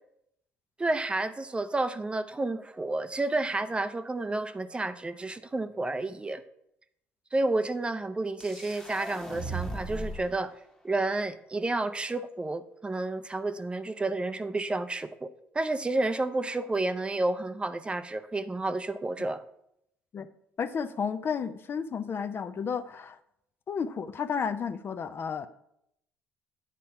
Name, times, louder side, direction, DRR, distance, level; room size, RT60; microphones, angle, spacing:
voice 1, 0.8-6.4 7.3-10.5 10.8-19.4, right 2 dB, 20° right, 11 dB, 0.5 m, -30 dB
sound 1, 8.4-10.4, right 2 dB, 10° left, 1.2 m, -37 dB
voice 2, 20.6-23.2 23.7-25.5, left 6 dB, 45° left, 12 dB, 0.5 m, -32 dB
8.4 x 4.1 x 5.8 m, 0.76 s
supercardioid pair, 75°, 5 cm